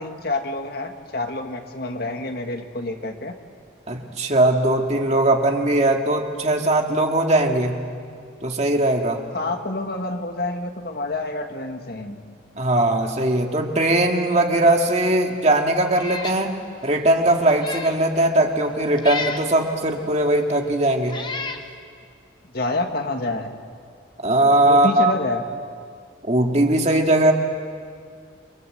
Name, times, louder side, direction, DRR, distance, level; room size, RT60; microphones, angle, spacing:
voice 1, 0.0-3.4 9.3-12.2 22.5-23.6 24.7-25.4, left 2 dB, 50° left, 5 dB, 1.8 m, -28 dB
voice 2, 3.9-7.8 8.4-9.2 12.6-21.2 24.2-25.1 26.2-27.3, right 1 dB, 35° right, 3 dB, 2.1 m, -20 dB
Meow, 15.9-16.4 16.9-17.0 17.5-18.0 19.0-19.5 20.4-20.5 21.1-21.7, left 4 dB, 25° left, 1.3 m, -31 dB
29.0 x 24.5 x 7.9 m, 2.2 s
head